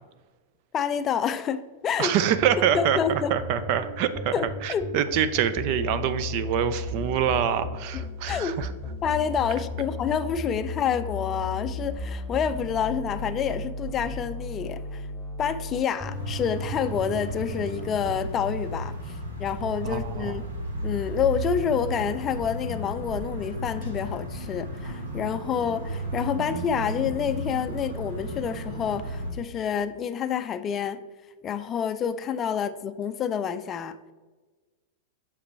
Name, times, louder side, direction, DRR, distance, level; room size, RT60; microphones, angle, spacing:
voice 1, 0.7-2.1 2.7-3.3 4.3-4.9 8.3-8.6 9.0-15.1 15.4-20.4 20.8-31.0 31.4-34.0, left 7 dB, 30° left, 10 dB, 0.4 m, -28 dB
voice 2, 2.0-4.3 4.6-8.7 19.8-20.4, right 9 dB, 50° right, 12 dB, 0.5 m, -25 dB
sound 1, 2.3-18.1, left 2 dB, 10° right, 2.1 m, -35 dB
sound 2, 16.1-29.3, right 1 dB, 90° right, 1.2 m, -34 dB
7.0 x 5.0 x 3.3 m, 1.3 s
hypercardioid pair, 120°, 0 cm